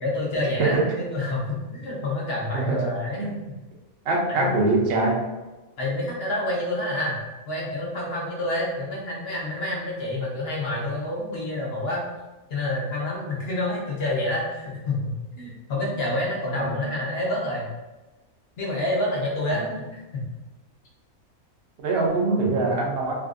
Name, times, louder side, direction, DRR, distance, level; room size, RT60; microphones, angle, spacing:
voice 1, 0.0-3.2 4.3-4.6 5.8-7.2 7.5-12.0 12.5-17.7 18.6-20.2, left 1 dB, 50° left, -4 dB, 1.0 m, -28 dB
voice 2, 4.1-5.2 16.6-16.8 19.5-19.7 21.8-23.1, right 3 dB, 60° right, -2 dB, 0.6 m, -23 dB
3.5 x 2.5 x 2.4 m, 1.1 s
omnidirectional pair, 1.5 m